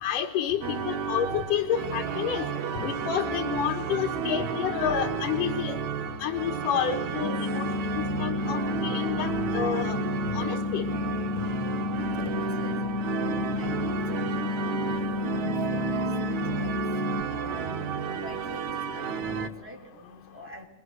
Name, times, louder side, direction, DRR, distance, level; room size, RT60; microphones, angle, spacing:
voice 1, 0.0-2.5 2.7-5.8 6.2-7.7 8.0-10.0 10.3-10.9, left 9 dB, 90° left, 4 dB, 3.1 m, -29 dB
sound 1, 0.6-19.5, right 6 dB, 65° right, 2.7 m, -32 dB
sound 2, 7.2-17.2, left 4 dB, 50° left, 2.0 m, -31 dB
voice 2, 12.3-17.9 18.2-20.7, left 1 dB, 5° right, 1 dB, 6.3 m, -45 dB
28.5 x 25.5 x 8.0 m, 0.67 s
omnidirectional pair, 3.7 m